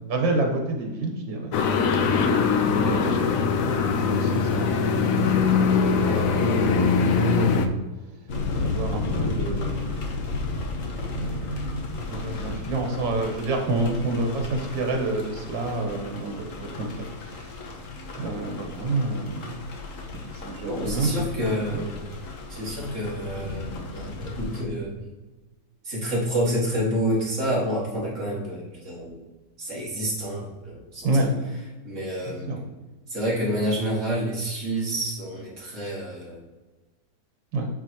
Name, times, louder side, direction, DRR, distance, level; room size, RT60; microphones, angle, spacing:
voice 1, 0.1-1.6 2.6-7.8 8.6-10.0 11.1-17.5 18.2-19.6 20.2-21.3 21.7-21.8 31.0-31.3 32.3-32.6 37.5-37.7, right 2 dB, 85° right, 2 dB, 1.9 m, -29 dB
sound 1, 1.5-7.7, left 5 dB, 70° left, 0.8 m, -22 dB
sound 2, 8.3-24.6, left 3 dB, 50° left, 1.2 m, -34 dB
voice 2, 20.6-22.0 22.5-25.0 25.8-29.2 29.6-31.1 31.8-32.5 33.1-36.4, equal, 40° right, -5 dB, 2.3 m, -28 dB
8.8 x 4.5 x 2.9 m, 1.2 s
omnidirectional pair, 2.0 m